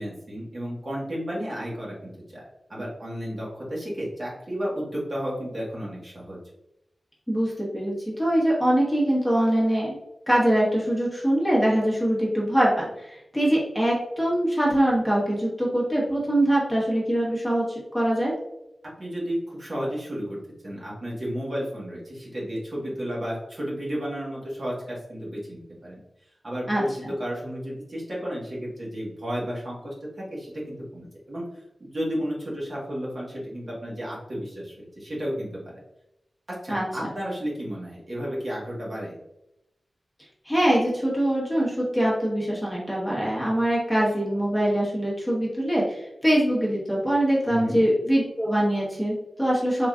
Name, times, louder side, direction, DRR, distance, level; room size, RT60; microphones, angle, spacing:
voice 1, 0.0-2.4 2.7-6.4 19.0-20.4 20.6-26.0 26.4-26.9 27.2-31.4 31.8-35.7 36.5-39.2 47.5-47.8, equal, 50° right, -5 dB, 1.4 m, -32 dB
voice 2, 7.3-10.0 10.3-18.3 26.7-27.1 36.7-36.8 40.4-49.9, right 1 dB, ahead, -5 dB, 1.2 m, -23 dB
3.6 x 3.0 x 2.4 m, 0.85 s
wide cardioid pair, 80°, 0 cm